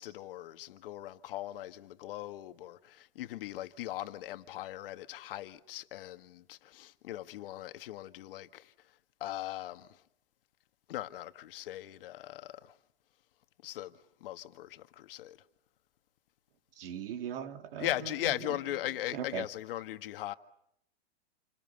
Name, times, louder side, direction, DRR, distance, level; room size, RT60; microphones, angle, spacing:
voice 1, 0.0-8.7 9.2-10.0 10.9-12.7 13.6-13.9 14.2-15.4 17.8-20.3, left 14 dB, 55° left, 1.7 m, -39 dB
voice 2, 16.8-18.5 19.1-19.5, right 9 dB, 60° right, 2.6 m, -39 dB
29.0 x 26.0 x 7.9 m
hypercardioid pair, 145°, 33 cm